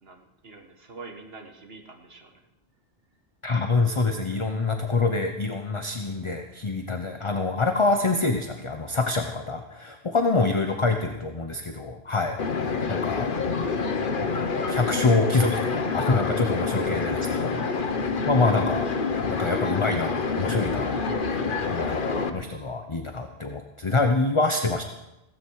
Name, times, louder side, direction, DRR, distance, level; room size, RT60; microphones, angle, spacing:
voice 1, 0.0-2.4 10.3-10.5 12.9-13.2, right 3 dB, 65° right, 4 dB, 1.9 m, -46 dB
voice 2, 3.4-12.4 12.9-13.3 14.7-17.7 17.9-18.9 19.3-21.2 21.7-24.8, left 3 dB, 30° left, 5 dB, 0.9 m, -26 dB
sound 1, 12.4-22.3, left 4 dB, 55° left, 1.1 m, -27 dB
16.5 x 15.0 x 4.8 m, 0.92 s
omnidirectional pair, 1.1 m